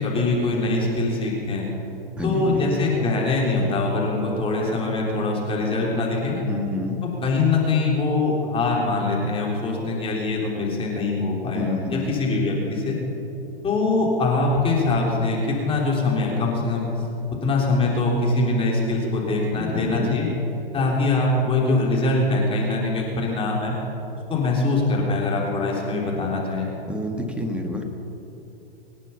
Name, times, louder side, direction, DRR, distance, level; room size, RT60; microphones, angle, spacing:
voice 1, 0.0-1.7 2.2-6.5 7.2-13.0 13.6-16.9 17.3-20.3 20.7-23.7 24.3-26.7, left 3 dB, 20° left, -3 dB, 3.5 m, -23 dB
voice 2, 2.2-2.7 6.5-7.0 11.5-12.1 19.5-20.2 26.9-27.8, left 2 dB, 5° right, 3 dB, 1.8 m, -28 dB
25.5 x 9.2 x 5.7 m, 3.0 s
hypercardioid pair, 115°, 30 cm